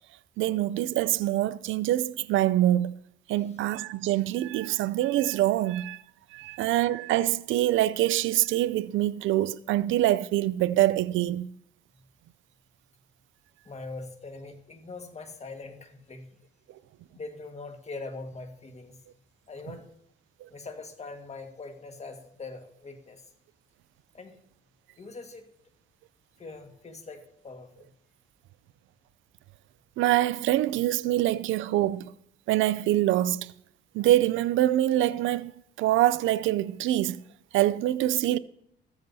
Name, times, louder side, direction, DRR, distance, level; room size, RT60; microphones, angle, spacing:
voice 1, 0.4-3.0 3.3-6.0 6.3-11.5 30.0-32.1 32.5-33.5 33.9-35.5 35.8-37.2 37.5-38.4, right 14 dB, 80° right, 0.4 m, -25 dB
voice 2, 13.6-16.3 17.1-19.0 19.5-19.9 20.5-23.3 24.1-24.4 25.0-25.5 26.4-27.9, left 3 dB, 35° left, 1.6 m, -42 dB
14.0 x 13.5 x 2.7 m
cardioid pair, 90°, 20 cm